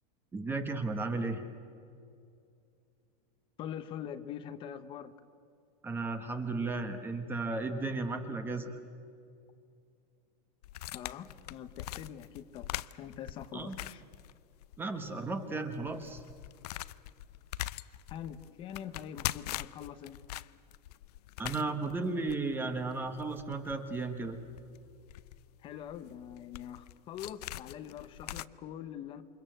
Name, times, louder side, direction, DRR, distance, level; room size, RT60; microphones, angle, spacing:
voice 1, 0.3-1.4 5.8-8.8 13.5-13.8 14.8-16.2 21.4-24.4, right 3 dB, 10° right, 7 dB, 1.2 m, -34 dB
voice 2, 3.6-5.1 10.9-14.0 18.1-20.2 25.6-29.2, left 9 dB, 25° left, 11 dB, 0.9 m, -44 dB
sound 1, 10.6-14.8 15.1-15.2 15.7-28.4, left 15 dB, 70° left, 0.7 m, -43 dB
28.5 x 25.5 x 7.9 m, 2.4 s
supercardioid pair, 175°, 21 cm